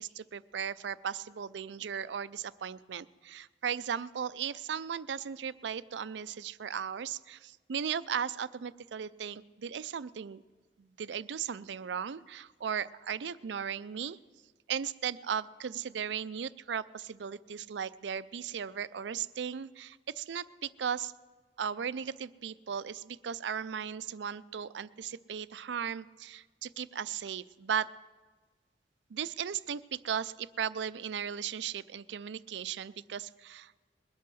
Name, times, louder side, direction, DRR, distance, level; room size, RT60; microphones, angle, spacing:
voice 1, 0.0-10.4 10.8-14.2 14.7-21.1 21.6-27.9 29.1-34.0, right 8 dB, 80° right, 17 dB, 0.4 m, -37 dB
21.0 x 8.4 x 6.3 m, 1.3 s
head